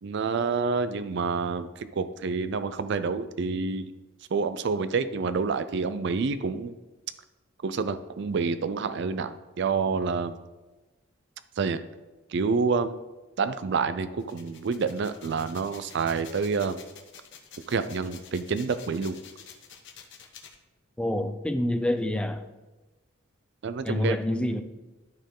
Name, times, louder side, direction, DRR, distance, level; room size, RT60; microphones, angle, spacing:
voice 1, 0.0-3.9 4.3-6.8 7.6-10.3 11.6-11.8 12.3-13.0 13.4-16.8 17.7-19.2 23.6-24.2, right 5 dB, 60° right, 12 dB, 0.4 m, -28 dB
sound 1, 14.2-20.6, left 7 dB, 60° left, 1.0 m, -49 dB
voice 2, 21.0-22.4 23.8-24.6, left 1 dB, 5° left, 8 dB, 0.4 m, -27 dB
12.0 x 4.4 x 3.8 m, 1.1 s
head